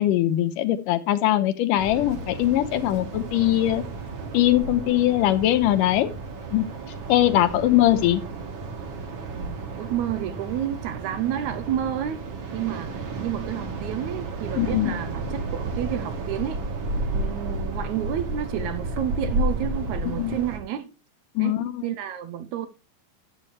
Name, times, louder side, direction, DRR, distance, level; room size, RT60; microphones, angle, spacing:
voice 1, 0.0-3.8 4.3-6.1 6.5-6.7 7.1-8.2 14.6-14.9 20.1-20.4 21.4-21.7, left 14 dB, 75° left, 2.3 m, -21 dB
sound 1, 1.8-20.6, right 2 dB, 50° right, 1.6 m, -32 dB
voice 2, 9.3-16.6 17.1-20.9 21.4-22.7, right 10 dB, 85° right, 1.7 m, -30 dB
12.0 x 8.2 x 3.2 m
omnidirectional pair, 4.2 m